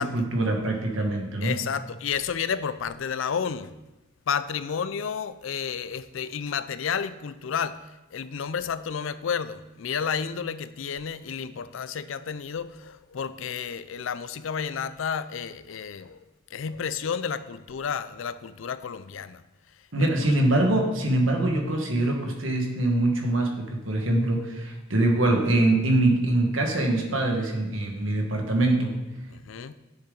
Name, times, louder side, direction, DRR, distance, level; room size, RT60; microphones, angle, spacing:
voice 1, 0.0-1.5 19.9-28.9, right 1 dB, 70° right, 2 dB, 1.6 m, -24 dB
voice 2, 1.4-3.8 4.3-16.2 16.5-20.6 29.3-29.7, left 7 dB, 70° left, 14 dB, 0.4 m, -31 dB
9.6 x 7.2 x 3.9 m, 1.0 s
head